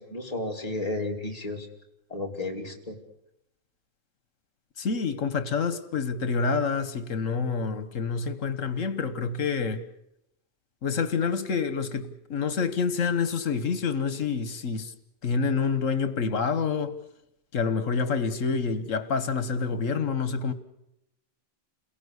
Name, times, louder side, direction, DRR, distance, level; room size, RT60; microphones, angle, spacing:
voice 1, 0.0-1.7 2.1-3.0, left 2 dB, 30° left, 3.1 m, -33 dB
voice 2, 4.8-9.8 10.8-14.9 15.2-16.9 17.5-20.5, left 5 dB, 80° left, 1.7 m, -27 dB
29.0 x 17.5 x 8.2 m
omnidirectional pair, 1.3 m